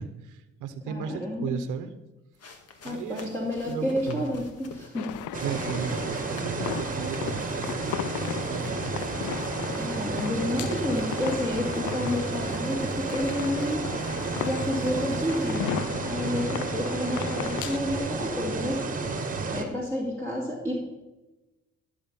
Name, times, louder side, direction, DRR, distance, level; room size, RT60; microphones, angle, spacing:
voice 1, 0.0-1.9 2.8-3.3 3.7-4.3 5.4-9.1 16.2-16.7, right 7 dB, 90° right, 9 dB, 0.9 m, -35 dB
voice 2, 0.9-1.6 2.8-5.2 9.8-13.8 14.4-15.8 16.0-18.8 19.5-20.8, left 1 dB, 10° left, -4 dB, 2.4 m, -30 dB
sound 1, 2.4-15.6, left 3 dB, 55° left, 1.7 m, -47 dB
sound 2, 4.9-17.8, left 13 dB, 75° left, 0.5 m, -37 dB
sound 3, 5.3-19.6, right 3 dB, 25° right, 1.5 m, -31 dB
13.5 x 6.8 x 5.5 m, 1.1 s
cardioid pair, 90°, 30 cm